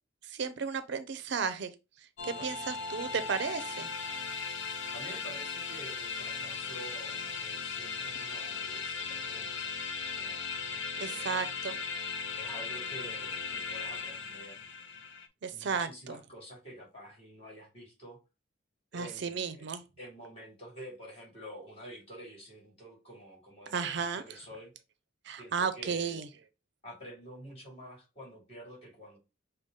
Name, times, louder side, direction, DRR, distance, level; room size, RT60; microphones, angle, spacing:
voice 1, 0.3-1.7 2.2-3.9 11.0-11.7 15.4-16.2 18.9-19.8 23.7-24.2 25.3-26.3, right 5 dB, 60° right, 0.5 m, -34 dB
sound 1, 2.2-15.3, left 5 dB, 75° left, 0.7 m, -37 dB
voice 2, 4.9-9.9 10.1-11.4 12.4-14.6 15.5-18.2 18.9-19.7 20.0-24.7 25.4-26.2 26.8-29.2, equal, 30° left, 2.4 m, -48 dB
6.4 x 2.3 x 3.6 m
head